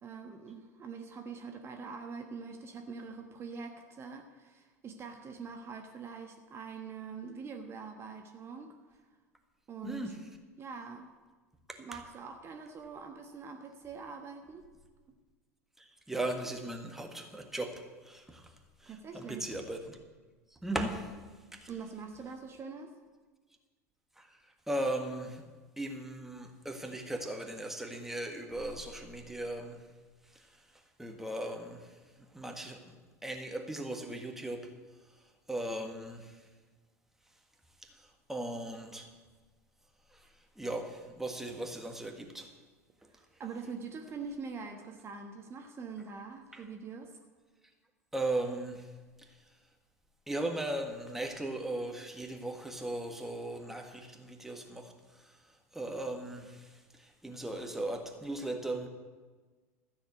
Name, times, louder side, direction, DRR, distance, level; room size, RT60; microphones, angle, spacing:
voice 1, 0.0-8.7 9.7-10.1 10.6-11.1 11.8-14.7 18.9-19.5 21.7-22.9 43.1-47.2, right 5 dB, 30° right, 4 dB, 1.3 m, -44 dB
voice 2, 9.8-10.2 11.7-11.8 15.8-18.5 18.8-20.0 20.6-21.1 21.5-21.7 24.2-24.4 24.7-25.5 25.8-29.8 30.3-30.6 31.0-32.0 32.3-33.0 33.2-34.7 35.5-36.4 37.8-39.1 40.1-40.3 40.5-42.5 46.5-46.6 48.1-48.9 49.2-49.3 50.3-55.4 55.7-58.9, right 1 dB, 5° right, 4 dB, 1.6 m, -38 dB
13.5 x 7.2 x 8.1 m, 1.3 s
figure-of-eight pair, 75°, 9 cm